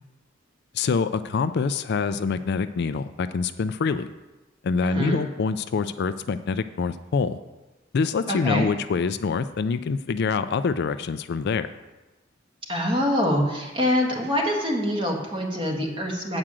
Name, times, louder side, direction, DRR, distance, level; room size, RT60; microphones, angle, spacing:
voice 1, 0.7-4.1 4.6-7.4 7.9-11.7, left 5 dB, 55° left, 12 dB, 0.4 m, -25 dB
voice 2, 4.8-5.2 8.3-8.7 12.7-16.4, equal, 25° right, 0 dB, 1.6 m, -24 dB
8.8 x 4.9 x 7.5 m, 1.1 s
head